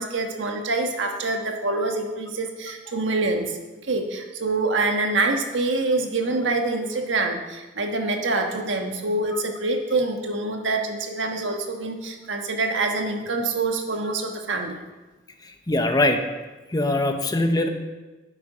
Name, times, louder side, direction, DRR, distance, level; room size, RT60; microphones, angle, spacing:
voice 1, 0.0-14.8, right 3 dB, 80° right, 3 dB, 1.3 m, -26 dB
voice 2, 15.7-16.2 16.7-17.7, left 1 dB, 20° left, 6 dB, 0.8 m, -21 dB
10.0 x 8.1 x 5.0 m, 1.2 s
head